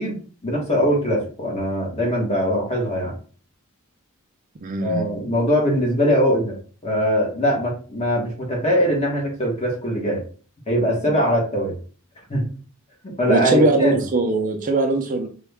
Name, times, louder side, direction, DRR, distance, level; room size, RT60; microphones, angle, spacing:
voice 1, 0.0-3.1 4.8-6.6 6.8-10.2 10.7-11.7 12.3-12.5 13.0-14.0, equal, 30° left, -2 dB, 1.2 m, -21 dB
voice 2, 4.6-5.1 13.3-15.3, right 2 dB, 35° right, 4 dB, 0.4 m, -20 dB
3.5 x 2.3 x 3.3 m, 0.39 s
head